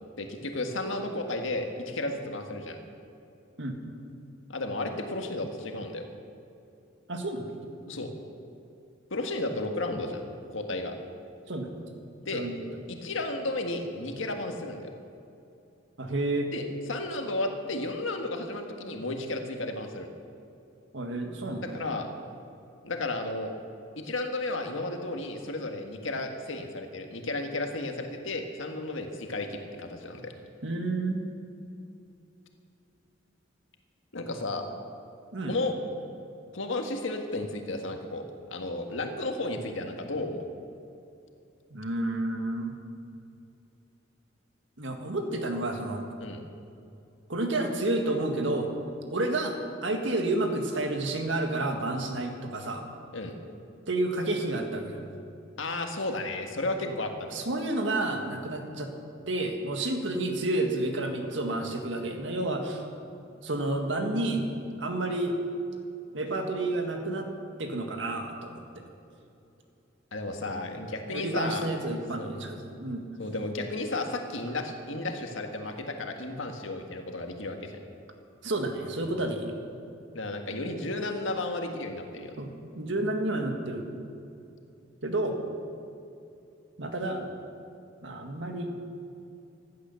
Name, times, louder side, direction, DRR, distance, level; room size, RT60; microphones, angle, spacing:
voice 1, 0.2-2.8 4.5-6.0 7.9-8.1 9.1-10.9 12.2-12.4 12.9-14.9 16.5-20.1 21.6-22.1 22.8-23.5 24.0-30.3 34.1-34.7 35.5-35.7 36.5-38.2 38.5-40.4 46.2-46.4 53.1-53.3 55.6-57.4 70.1-71.7 72.2-72.3 73.2-77.7 80.1-82.3, left 2 dB, 75° left, 4 dB, 1.6 m, -33 dB
voice 2, 7.1-7.7 11.5-11.8 12.3-12.6 16.0-16.5 20.9-21.7 30.6-31.3 35.3-35.5 41.7-42.8 44.8-46.0 47.3-48.7 49.1-49.6 49.8-52.8 53.9-55.0 57.3-58.9 59.3-62.8 63.4-64.4 64.8-65.4 66.1-67.3 67.6-68.9 71.1-73.1 78.4-79.6 82.4-83.9 85.0-85.4 86.8-87.3 88.0-88.7, right 2 dB, 65° right, 4 dB, 1.9 m, -30 dB
15.5 x 11.5 x 7.0 m, 2.7 s
head